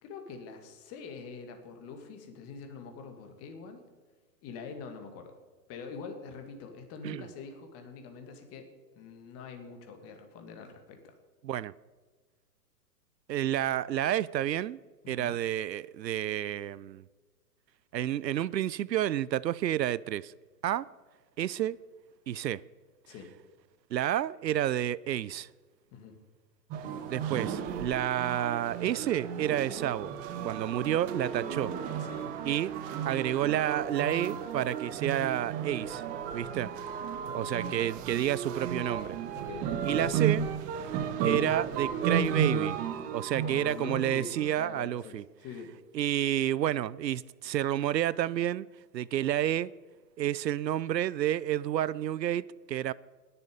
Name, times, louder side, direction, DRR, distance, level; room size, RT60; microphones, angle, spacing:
voice 1, 0.0-3.8 4.4-5.3 5.7-8.7 9.0-11.1 15.0-15.4 23.1-23.3 25.9-26.2 30.4-30.6 32.0-32.3 39.3-39.7 43.2-45.7, left 5 dB, 30° left, 2.0 m, -44 dB
voice 2, 13.3-14.8 15.1-17.0 17.9-20.3 20.6-20.9 21.4-21.8 22.3-22.6 23.9-25.5 27.1-30.1 30.4-31.7 32.5-32.7 33.0-36.0 36.3-36.7 37.3-39.2 39.8-40.5 41.2-42.8 43.1-45.2 45.9-48.7 48.9-49.7 50.2-52.9, right 12 dB, 85° right, 0.6 m, -30 dB
sound 1, 26.7-44.5, right 8 dB, 20° right, 0.6 m, -33 dB
Rain, 35.8-41.2, right 3 dB, 50° right, 2.0 m, -54 dB
19.5 x 7.0 x 5.0 m
hypercardioid pair, 120°, 49 cm